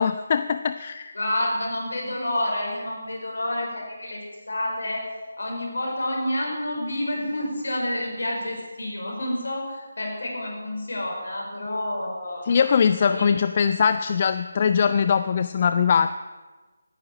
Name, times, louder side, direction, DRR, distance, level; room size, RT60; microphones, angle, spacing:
voice 1, 0.0-1.2 12.4-16.1, left 6 dB, 35° left, 12 dB, 0.4 m, -21 dB
voice 2, 1.1-5.1 5.4-12.5 13.0-13.3, left 1 dB, 65° left, -1 dB, 5.4 m, -29 dB
15.0 x 10.0 x 7.4 m, 1.3 s
figure-of-eight pair, 155°, 0 cm